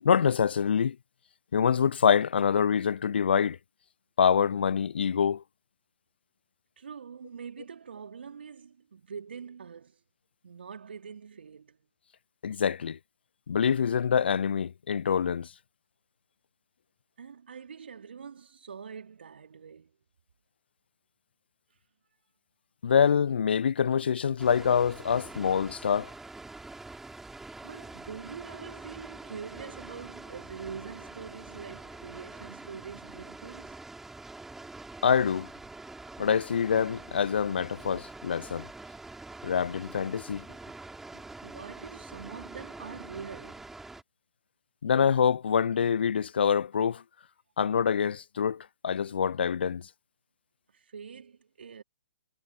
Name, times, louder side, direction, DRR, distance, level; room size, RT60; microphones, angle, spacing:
voice 1, 0.0-1.0 1.5-3.6 4.2-5.4 12.4-13.0 13.5-15.5 22.8-26.1 35.0-35.5 36.2-38.7 39.4-40.5 44.8-47.0 47.6-49.9, left 7 dB, 65° left, 0.5 m, -25 dB
voice 2, 6.8-10.0 10.4-11.9 17.2-19.9 27.6-33.8 41.4-43.7 50.7-51.8, right 6 dB, 65° right, 3.7 m, -44 dB
Water, 24.4-44.0, right 3 dB, 5° right, 6.3 m, -45 dB
figure-of-eight pair, 130°, 6 cm